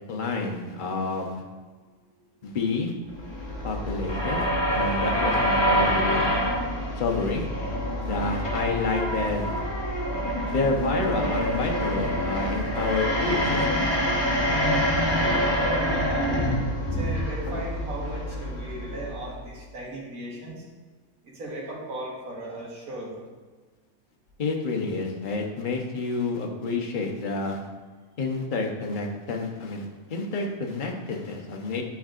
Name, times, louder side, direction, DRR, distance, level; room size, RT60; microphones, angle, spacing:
voice 1, 0.1-1.4 2.4-2.9 3.6-4.4 4.7-6.4 7.0-7.5 8.0-9.6 10.5-14.0 24.4-27.6 28.2-31.8, left 3 dB, 40° left, 1 dB, 0.9 m, -29 dB
sound 1, 3.1-19.4, equal, 20° left, 1.2 m, -26 dB
voice 2, 15.2-16.3 16.8-20.6 21.2-23.1, right 1 dB, 85° right, -3 dB, 1.9 m, -36 dB
10.0 x 4.6 x 2.5 m, 1.4 s
omnidirectional pair, 1.5 m